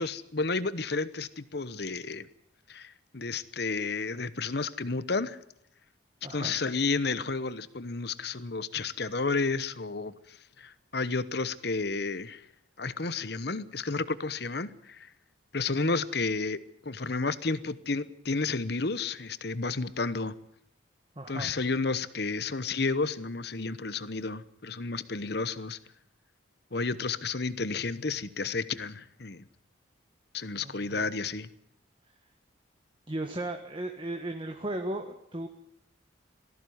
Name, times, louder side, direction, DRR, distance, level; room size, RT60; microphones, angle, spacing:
voice 1, 0.0-2.3 2.7-5.4 6.3-12.4 12.8-15.1 15.5-20.3 21.3-25.8 26.7-29.4 30.3-31.5, left 4 dB, 55° left, 15 dB, 1.0 m, -31 dB
voice 2, 6.2-6.6 21.1-21.5 30.6-31.1 33.1-35.5, right 1 dB, 25° right, 4 dB, 1.5 m, -36 dB
18.5 x 15.0 x 9.5 m, 0.76 s
head